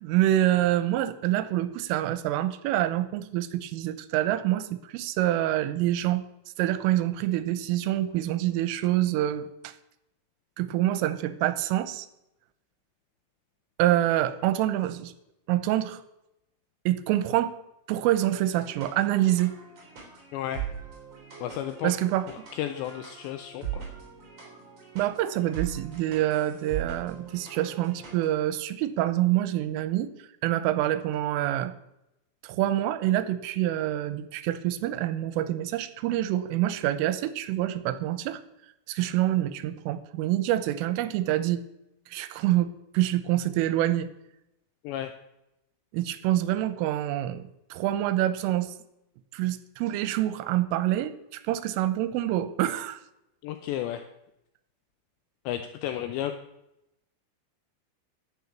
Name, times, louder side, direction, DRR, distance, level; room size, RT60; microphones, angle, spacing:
voice 1, 0.0-6.2 6.6-9.7 10.6-12.1 13.8-15.1 15.5-16.0 16.9-17.5 17.9-19.5 21.8-22.3 25.0-30.1 30.4-31.7 32.4-38.4 38.9-41.6 42.1-44.1 45.9-48.7 49.3-53.0, right 13 dB, 85° right, 13 dB, 3.3 m, -26 dB
sound 1, 18.5-28.3, right 9 dB, 35° right, 3.9 m, -40 dB
voice 2, 20.3-20.6 21.4-21.9 22.5-23.9 44.8-45.1 53.4-54.0 55.5-56.3, left 12 dB, 85° left, 8 dB, 2.6 m, -32 dB
10.5 x 9.2 x 7.1 m, 0.86 s
omnidirectional pair, 5.8 m